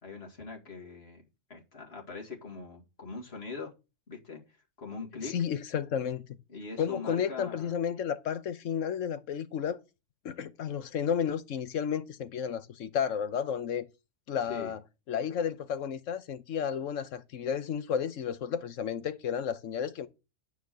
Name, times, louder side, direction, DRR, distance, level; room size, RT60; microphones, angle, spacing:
voice 1, 0.0-3.7 4.1-5.4 6.5-7.7 14.4-14.7, left 4 dB, 55° left, 2.3 m, -42 dB
voice 2, 5.2-6.2 6.8-9.8 10.2-13.9 14.3-14.8 15.1-20.1, left 8 dB, 85° left, 1.2 m, -32 dB
9.3 x 4.7 x 6.1 m
omnidirectional pair, 1.3 m